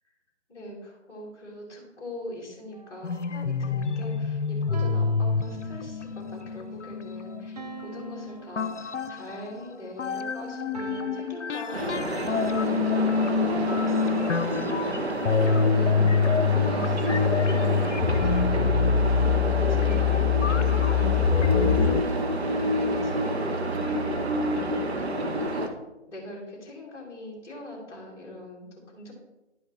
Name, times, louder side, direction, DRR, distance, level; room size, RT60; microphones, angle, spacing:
voice 1, 0.5-15.4 15.7-16.3 16.7-24.1 24.4-25.0 25.5-25.7 26.1-29.1, left 1 dB, 10° left, -8 dB, 2.2 m, -42 dB
sound 1, 2.7-3.2 4.7-6.2 7.6-9.4 10.7-12.3 13.5-15.1 16.6-18.1, right 4 dB, 35° right, 0.6 m, -43 dB
sound 2, 3.0-9.7 10.0-22.0, left 6 dB, 85° left, 0.6 m, -25 dB
sound 3, 11.7-25.7, right 1 dB, 65° right, 1.2 m, -29 dB
11.0 x 5.5 x 3.3 m, 0.99 s
figure-of-eight pair, 150°, 35 cm